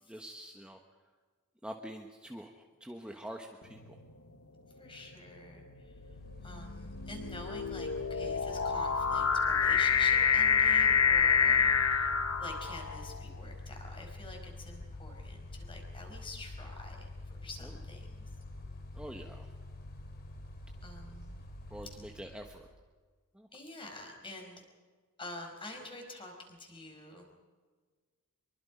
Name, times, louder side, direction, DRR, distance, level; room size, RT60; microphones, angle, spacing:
voice 1, 0.1-0.8 1.6-4.0 11.4-11.8 17.6-17.8 18.9-19.5 21.7-22.7 23.3-23.5, equal, 5° right, 2 dB, 1.2 m, -46 dB
sound 1, 3.7-4.1 5.0-13.2, left 6 dB, 70° left, 1.2 m, -28 dB
voice 2, 4.8-6.0 6.4-18.2 20.8-21.4 23.5-24.6 25.2-27.3, left 2 dB, 25° left, 2 dB, 4.9 m, -48 dB
Mechanical fan, 5.9-22.7, left 2 dB, 45° left, 3.4 m, -46 dB
25.0 x 23.5 x 5.1 m, 1.5 s
head